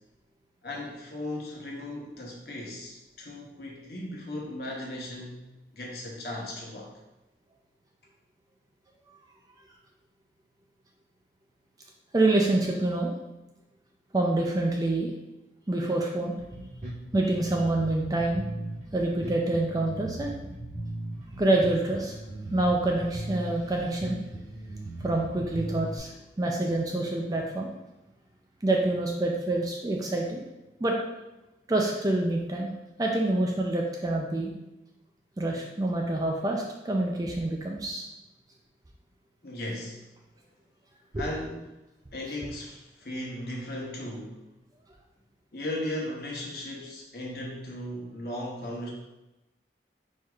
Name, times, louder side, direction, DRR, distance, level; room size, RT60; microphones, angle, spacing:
voice 1, 0.6-5.4 5.7-6.9 39.4-40.0 41.2-41.7 42.1-44.4 45.5-48.9, left 1 dB, 60° left, -3 dB, 1.0 m, -36 dB
voice 2, 12.1-13.1 14.1-15.1 15.7-16.3 17.1-18.4 18.9-20.3 21.4-22.1 22.5-24.2 25.0-26.1 26.4-27.7 28.6-30.4 30.8-31.0 31.7-32.7 33.0-34.5 35.4-38.1 41.1-41.3, right 2 dB, 20° right, 0 dB, 0.4 m, -26 dB
Bass guitar, 16.4-26.0, right 1 dB, 40° right, 1.5 m, -38 dB
4.7 x 4.4 x 2.4 m, 0.98 s
head